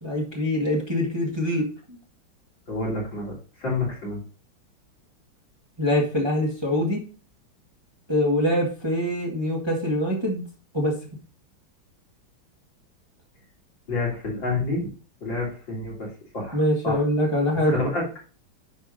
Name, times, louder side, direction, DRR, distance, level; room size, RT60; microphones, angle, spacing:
voice 1, 0.0-1.6 5.8-7.0 8.1-10.4 10.7-10.9 16.5-17.7, left 1 dB, 15° right, -2 dB, 1.7 m, -24 dB
voice 2, 2.7-4.2 13.9-14.8 15.2-16.1 16.3-16.6 16.8-17.0 17.6-18.0, left 3 dB, 65° left, -5 dB, 4.4 m, -28 dB
10.0 x 3.5 x 5.0 m, 0.37 s
omnidirectional pair, 2.2 m